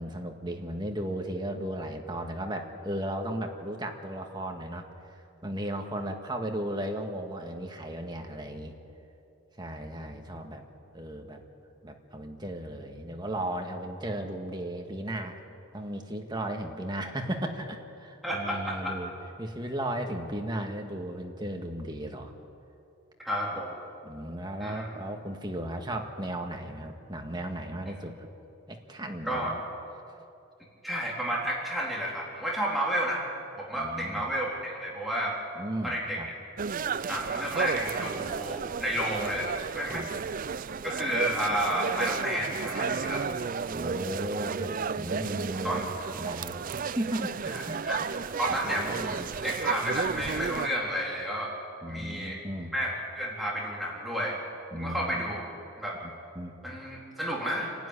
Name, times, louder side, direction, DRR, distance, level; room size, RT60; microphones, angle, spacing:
voice 1, 0.0-8.7 9.6-10.6 10.9-11.4 11.8-15.4 15.7-19.1 19.4-22.3 24.0-28.3 28.7-29.6 30.1-30.2 33.7-34.3 35.6-36.3 39.8-40.1 43.7-48.0 48.6-49.3 51.8-52.7 54.7-55.3 56.0-56.1 56.4-56.6, right 1 dB, 20° right, 3 dB, 1.7 m, -35 dB
voice 2, 18.2-19.0 23.2-23.8 24.6-24.9 29.2-29.5 30.8-33.2 33.6-35.4 35.8-36.3 37.1-40.0 40.8-43.4 45.6-45.8 47.5-48.0 48.4-51.5 51.9-52.4 52.7-54.4 54.8-55.4 55.8-56.0 56.6-57.9, equal, ahead, -5 dB, 3.6 m, -31 dB
sound 1, 36.6-50.7, right 5 dB, 40° right, 0.4 m, -33 dB
28.0 x 12.0 x 9.9 m, 2.7 s
head